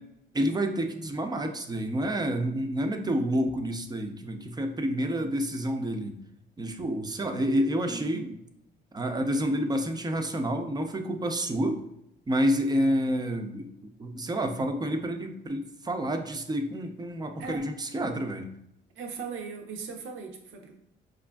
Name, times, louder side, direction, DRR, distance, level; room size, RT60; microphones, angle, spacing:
voice 1, 0.3-6.1 6.6-8.3 8.9-11.8 12.3-13.7 14.0-18.5, equal, 20° right, 5 dB, 0.5 m, -29 dB
voice 2, 7.9-8.3 17.4-17.6 19.0-20.7, right 5 dB, 85° right, 3 dB, 0.7 m, -39 dB
4.9 x 2.5 x 2.2 m, 0.79 s
cardioid pair, 90°, 20 cm